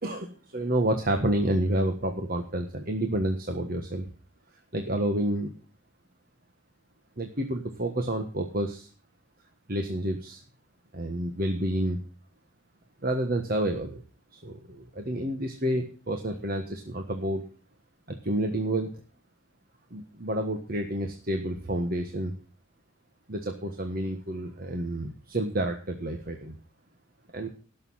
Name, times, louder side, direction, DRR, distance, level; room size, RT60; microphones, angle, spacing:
voice 1, 0.0-4.1 4.7-5.5 7.2-8.9 9.7-10.4 10.9-12.0 13.0-14.0 14.3-17.4 18.1-18.9 19.9-22.4 23.3-26.5 27.3-27.5, right 1 dB, 45° right, 5 dB, 1.5 m, -29 dB
17.5 x 6.8 x 5.7 m, 0.38 s
head